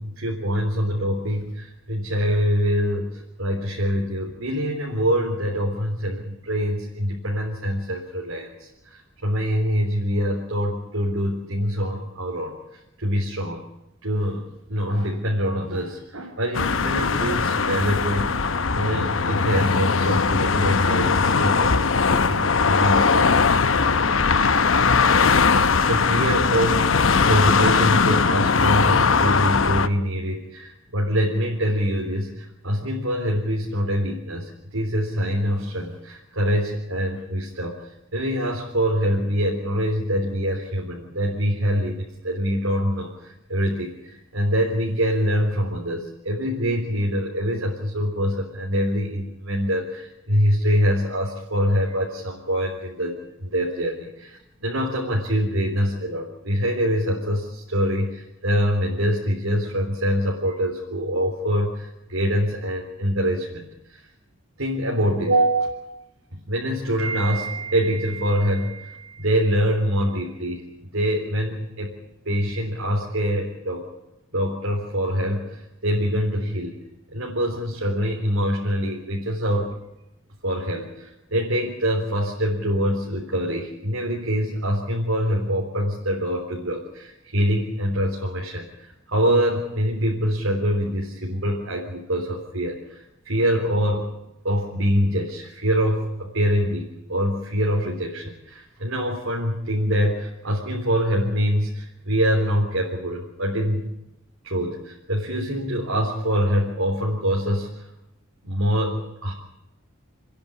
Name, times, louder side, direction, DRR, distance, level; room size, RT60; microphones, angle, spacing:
voice 1, 0.0-12.5 13.0-13.6 14.0-18.3 18.7-21.9 22.1-23.4 25.5-37.7 38.1-64.0 64.6-66.0 66.3-70.7 70.9-72.0 72.3-73.9 74.3-76.8 77.1-79.7 80.4-88.7 89.1-94.1 94.4-103.9 104.4-107.8 108.4-109.3, equal, 80° right, -2 dB, 3.8 m, -24 dB
sound 1, 16.5-29.9, left 5 dB, 70° left, 0.9 m, -20 dB
30.0 x 10.5 x 9.9 m, 0.89 s
head